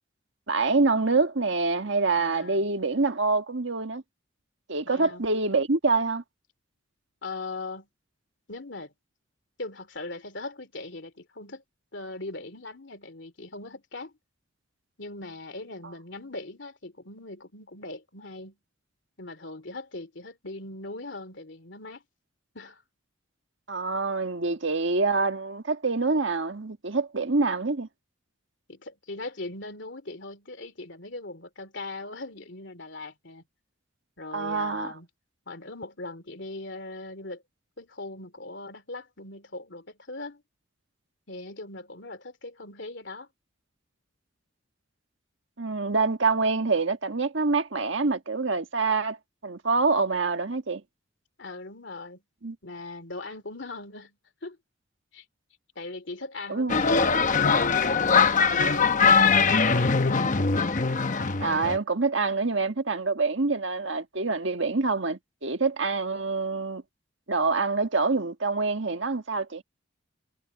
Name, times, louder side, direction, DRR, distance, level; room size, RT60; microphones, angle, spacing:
voice 1, 0.5-4.0 4.7-6.2 23.7-27.9 34.3-34.9 45.6-49.2 49.4-50.8 52.4-52.6 56.5-56.8 61.4-66.8 67.3-69.6, right 3 dB, 65° right, 1.6 m, -26 dB
voice 2, 2.2-2.7 4.8-5.2 7.2-7.9 8.5-8.9 9.6-11.6 11.9-14.1 15.0-18.6 19.2-22.0 22.5-22.8 28.7-33.4 34.2-35.1 35.5-37.4 37.8-40.4 41.3-43.3 51.4-52.2 52.6-54.2 54.4-54.6 55.1-55.2 55.7-60.3, left 2 dB, 60° left, 3.0 m, -40 dB
sound 1, 56.7-61.8, left 5 dB, 40° left, 0.9 m, -22 dB
head